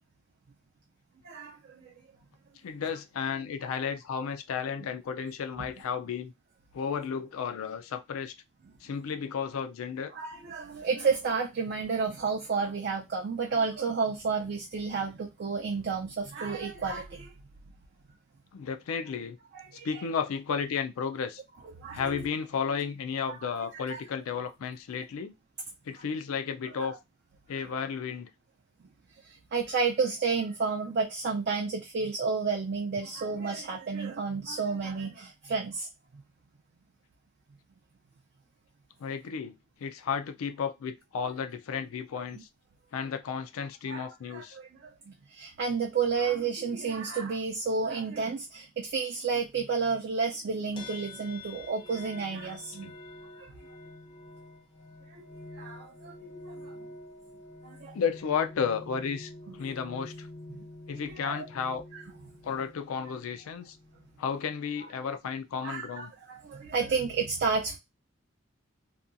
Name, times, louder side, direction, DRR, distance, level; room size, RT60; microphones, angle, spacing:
voice 1, 1.2-1.9 10.1-17.3 19.5-20.0 21.8-22.3 23.3-23.4 23.7-24.0 26.8-26.9 29.2-35.9 36.1-36.2 42.3-42.4 43.9-52.9 53.4-53.5 55.1-55.2 55.5-56.1 56.5-56.7 57.6-58.0 59.5-59.6 60.5-60.7 60.9-61.5 65.6-67.8, right 5 dB, 50° right, 0.4 m, -31 dB
voice 2, 2.6-6.3 6.7-8.4 8.8-10.1 18.5-19.4 19.8-21.4 21.9-25.3 25.9-27.0 27.5-28.3 39.0-42.5 42.9-44.6 57.9-60.3 60.9-61.8 62.4-63.8 64.2-66.1, left 6 dB, 90° left, 0.4 m, -33 dB
sound 1, 50.8-64.3, left 2 dB, 25° left, 0.4 m, -47 dB
2.8 x 2.2 x 2.4 m
head